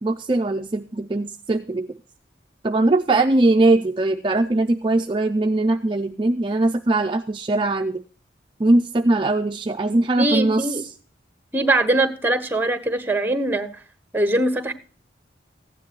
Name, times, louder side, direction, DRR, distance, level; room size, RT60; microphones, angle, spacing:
voice 1, 0.0-2.0 2.6-8.0 8.6-10.9, right 2 dB, 25° right, 6 dB, 0.4 m, -21 dB
voice 2, 10.2-10.8 11.5-13.7 14.1-14.7, right 2 dB, 10° right, 10 dB, 1.1 m, -21 dB
15.0 x 9.9 x 3.0 m, 0.41 s
head